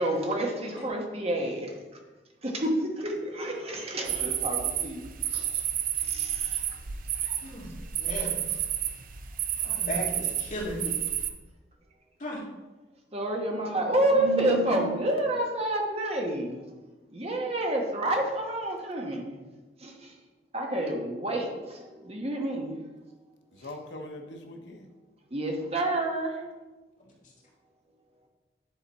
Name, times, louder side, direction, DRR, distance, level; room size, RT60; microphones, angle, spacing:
voice 1, 0.0-1.7 2.4-5.0 5.3-5.6 5.9-6.6 7.1-7.4 9.6-9.7 13.1-16.6 17.1-19.4 19.8-20.1 20.5-22.8 25.3-26.4, right 1 dB, 35° right, 1 dB, 1.1 m, -29 dB
voice 2, 3.4-4.0 23.5-24.9 27.0-27.2, left 1 dB, 85° left, 3 dB, 0.9 m, -43 dB
sound 1, 4.0-11.3, right 10 dB, 50° right, 0.5 m, -31 dB
voice 3, 7.4-8.5 9.6-11.0 12.2-12.4, equal, 45° left, -3 dB, 1.9 m, -36 dB
9.9 x 4.0 x 4.1 m, 1.2 s
head